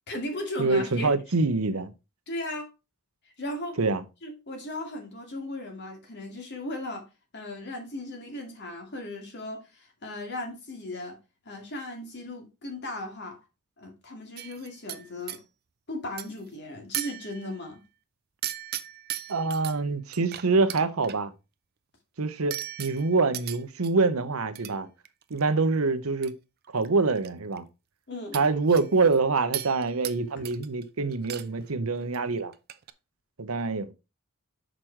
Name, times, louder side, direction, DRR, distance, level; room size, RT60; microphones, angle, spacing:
voice 1, 0.1-1.1 2.3-2.7 3.4-3.8 4.2-7.0 7.3-11.2 11.5-13.4 13.8-15.4 15.9-17.8 28.1-28.4 30.4-30.5, left 1 dB, 55° left, 2.2 m, -37 dB
voice 2, 0.6-1.9 3.8-4.0 19.3-21.3 22.2-24.9 25.3-26.3 26.7-27.6 28.3-32.5 33.4-33.9, right 3 dB, 80° right, 0.8 m, -25 dB
sound 1, 14.4-15.4 16.2-16.5 16.9-17.7 18.4-19.7 20.1-21.2 22.5-23.9 24.6-24.7 25.0-25.4 26.2-26.3 26.6-27.3 27.6-27.7 28.3-29.2 29.5-30.2 30.4-30.8 31.1-31.7 31.9-32.2 32.5-32.9, right 13 dB, 50° right, 0.5 m, -37 dB
6.3 x 5.1 x 4.5 m
head